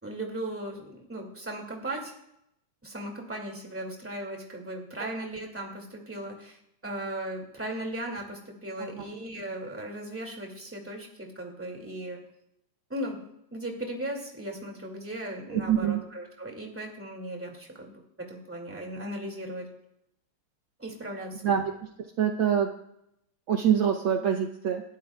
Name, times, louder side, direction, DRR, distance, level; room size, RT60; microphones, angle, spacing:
voice 1, 0.0-2.1 2.8-6.6 6.8-12.2 12.9-13.2 13.5-19.7 20.8-21.4, right 1 dB, 5° right, 0 dB, 1.8 m, -37 dB
voice 2, 15.5-16.0 21.4-21.7 22.2-22.7 23.5-24.8, right 8 dB, 80° right, 4 dB, 1.1 m, -25 dB
29.0 x 12.0 x 2.3 m, 0.79 s
omnidirectional pair, 3.3 m